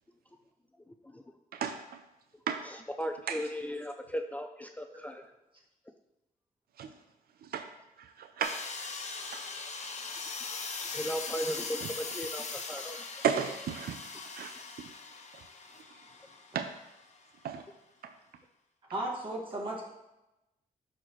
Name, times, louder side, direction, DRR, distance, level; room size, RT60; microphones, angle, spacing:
voice 1, 2.6-5.2 10.9-13.1, equal, 10° left, 5 dB, 0.4 m, -37 dB
voice 2, 8.2-8.6 9.3-9.4 13.2-14.0 14.4-14.5 16.5-16.7 17.4-17.6, right 7 dB, 80° right, 7 dB, 0.5 m, -32 dB
sound 1, 8.4-17.0, left 4 dB, 50° left, 0.8 m, -40 dB
voice 3, 18.9-19.9, right 1 dB, 35° right, -3 dB, 2.0 m, -35 dB
10.5 x 4.3 x 3.1 m, 0.96 s
cardioid pair, 95°, 16 cm